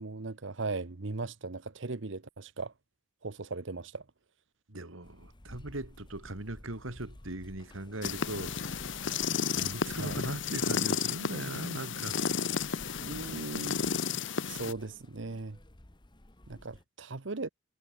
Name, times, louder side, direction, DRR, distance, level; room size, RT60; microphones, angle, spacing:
voice 1, 0.0-2.7 3.2-4.0 10.0-10.2 12.6-13.8 14.4-15.6 16.5-17.5, right 3 dB, 65° right, 1.0 m, -38 dB
voice 2, 4.7-8.9 9.5-12.2, right 2 dB, 90° right, 2.8 m, -39 dB
sound 1, 5.0-16.8, left 1 dB, 25° left, 1.2 m, -53 dB
sound 2, 8.0-14.7, left 6 dB, 65° left, 1.0 m, -32 dB
head